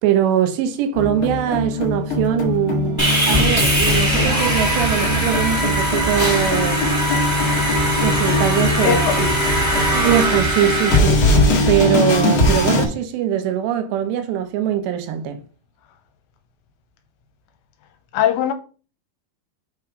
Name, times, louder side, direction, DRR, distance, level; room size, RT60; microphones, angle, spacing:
voice 1, 0.0-6.8 8.0-9.3 9.7-11.3 11.7-15.4, right 10 dB, 80° right, 2.9 m, -22 dB
sound 1, 0.9-12.9, left 1 dB, 55° left, 1.4 m, -21 dB
Sawing, 3.0-11.0, right 1 dB, 15° right, 0.7 m, -21 dB
voice 2, 8.8-9.3 18.1-18.5, left 10 dB, 85° left, 2.9 m, -20 dB
6.2 x 3.5 x 4.9 m
omnidirectional pair, 5.1 m